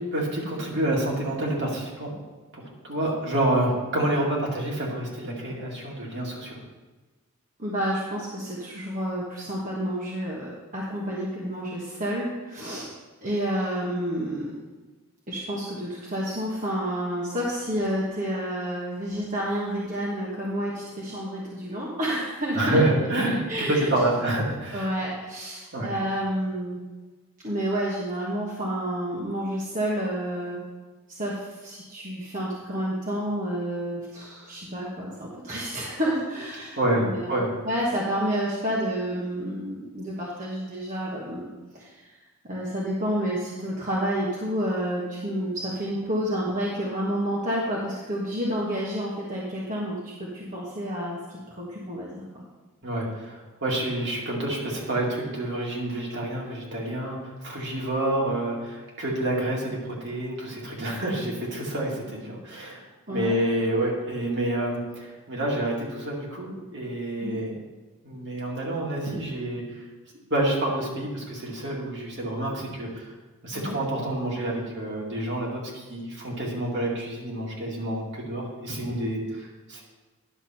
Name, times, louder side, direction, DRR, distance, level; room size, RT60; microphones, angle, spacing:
voice 1, 0.1-2.1 2.5-6.6 22.5-24.9 25.7-26.0 36.8-37.6 52.8-67.6 68.0-69.8 70.3-73.1 73.4-79.8, right 1 dB, 55° right, -3 dB, 2.3 m, -28 dB
voice 2, 7.6-12.9 13.2-14.4 15.3-22.8 23.2-23.9 24.7-26.8 27.4-30.6 31.1-41.4 41.7-42.0 42.5-52.4 63.1-63.4 67.2-67.4 73.5-73.8, equal, 40° right, -5 dB, 1.3 m, -30 dB
10.5 x 6.9 x 4.4 m, 1.3 s
head